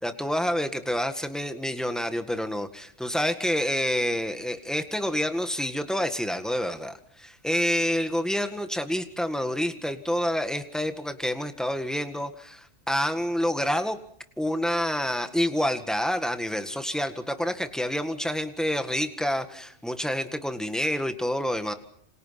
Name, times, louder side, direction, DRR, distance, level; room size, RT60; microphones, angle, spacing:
voice 1, 0.0-14.0 14.4-21.7, equal, ahead, 8 dB, 1.8 m, -28 dB
28.5 x 27.0 x 5.9 m, 0.68 s
omnidirectional pair, 1.2 m